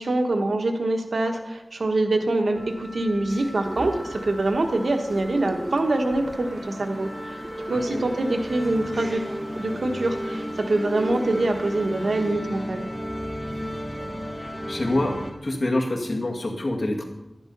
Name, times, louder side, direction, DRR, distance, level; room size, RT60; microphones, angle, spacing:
voice 1, 0.0-7.4 7.7-12.8, right 2 dB, 80° right, 4 dB, 1.3 m, -25 dB
sound 1, 2.5-15.3, equal, 5° right, 2.5 m, -34 dB
sound 2, 3.6-12.3, right 1 dB, 35° right, 1.0 m, -40 dB
voice 2, 7.7-8.0 13.4-13.7 14.4-17.1, left 1 dB, 55° left, 1 dB, 2.0 m, -27 dB
11.0 x 10.5 x 5.4 m, 0.97 s
wide cardioid pair, 80°, 0 cm